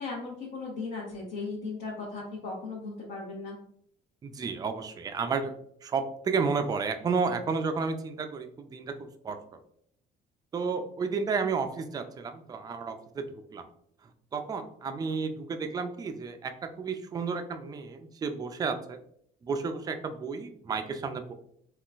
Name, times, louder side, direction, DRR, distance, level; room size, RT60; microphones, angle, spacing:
voice 1, 0.0-3.6, left 3 dB, 70° left, -5 dB, 1.0 m, -37 dB
voice 2, 4.2-5.5 5.8-9.4 10.5-13.3 13.5-13.6 14.3-16.5 16.8-19.0 19.4-21.3, right 5 dB, 25° right, 7 dB, 0.3 m, -32 dB
3.7 x 2.3 x 2.4 m, 0.68 s
cardioid pair, 110°, 17 cm